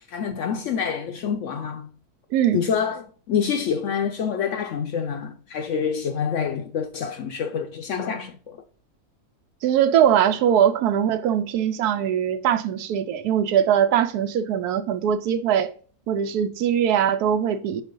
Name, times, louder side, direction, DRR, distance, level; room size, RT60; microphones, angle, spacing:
voice 1, 0.1-1.9 2.5-8.6, left 7 dB, 65° left, 0.8 m, -27 dB
voice 2, 2.3-2.6 9.6-15.7 16.1-17.8, right 9 dB, 80° right, 1.1 m, -21 dB
4.9 x 4.4 x 5.2 m
omnidirectional pair, 1.7 m